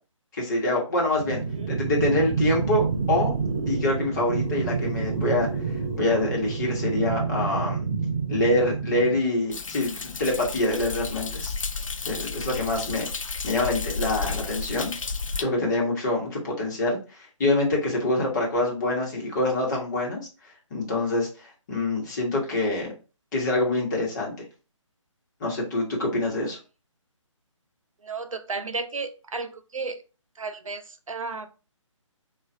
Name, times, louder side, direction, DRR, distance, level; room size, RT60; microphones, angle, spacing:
voice 1, 0.3-1.4 1.7-3.3 3.7-5.5 6.0-7.9 8.3-11.5 12.0-13.0 13.4-14.9 15.4-20.2 20.7-22.9 23.3-24.4 25.4-26.6, left 2 dB, 35° left, -2 dB, 1.1 m, -25 dB
sound 1, 1.2-9.2, right 5 dB, 25° right, 0.4 m, -28 dB
Thunder, 9.5-15.4, left 4 dB, 80° left, 0.4 m, -32 dB
voice 2, 28.0-30.0 30.4-31.5, right 4 dB, 80° right, 8 dB, 0.5 m, -33 dB
3.9 x 2.4 x 2.6 m, 0.33 s
figure-of-eight pair, 145°, 17 cm